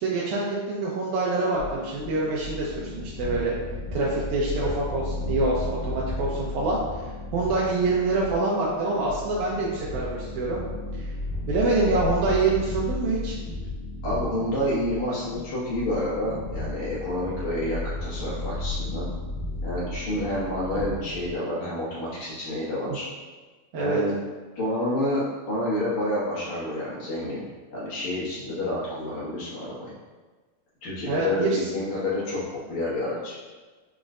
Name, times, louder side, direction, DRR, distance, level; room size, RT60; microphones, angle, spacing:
voice 1, 0.0-3.5 3.9-6.8 7.3-10.6 11.0-11.1 11.5-13.4 23.7-24.0 31.0-31.6, right 3 dB, 80° right, -5 dB, 2.0 m, -25 dB
sound 1, 1.6-21.3, left 2 dB, 85° left, 2.2 m, -34 dB
voice 2, 14.0-19.1 19.6-23.1 23.7-24.1 24.6-29.9 30.8-33.4, left 1 dB, 65° left, -9 dB, 2.7 m, -29 dB
6.2 x 3.0 x 2.4 m, 1.3 s
omnidirectional pair, 3.6 m